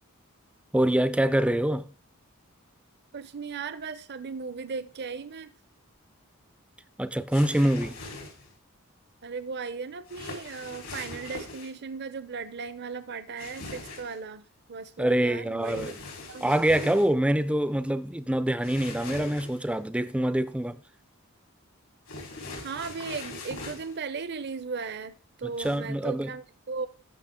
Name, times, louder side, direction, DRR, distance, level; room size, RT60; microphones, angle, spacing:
voice 1, 0.7-1.9 7.0-8.0 15.0-16.0 16.4-20.8 25.4-26.3, right 1 dB, 5° right, 0.4 m, -25 dB
voice 2, 3.1-5.5 9.2-14.4 14.7-16.0 16.3-16.9 22.6-25.1 25.4-26.9, right 5 dB, 50° right, 0.6 m, -37 dB
sound 1, 7.3-8.5 10.1-11.7 13.4-14.2 15.6-17.1 18.6-19.7 22.1-24.0 25.5-25.7, left 2 dB, 85° left, 4.2 m, -41 dB
13.5 x 6.4 x 3.7 m
head